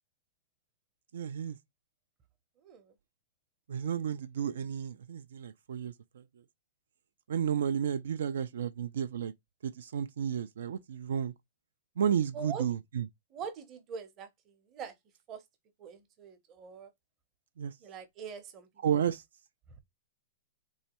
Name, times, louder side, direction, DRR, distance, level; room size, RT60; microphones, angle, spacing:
voice 1, 1.1-1.6 3.7-5.9 7.3-9.3 9.6-11.3 12.0-13.1 17.6-17.7 18.8-19.2, right 8 dB, 75° right, 0.3 m, -32 dB
voice 2, 13.3-14.3 14.7-14.9 15.3-15.4 15.8-16.9 17.8-19.0, right 6 dB, 25° right, 0.7 m, -43 dB
3.5 x 3.1 x 2.9 m
hypercardioid pair, 160°, 0 cm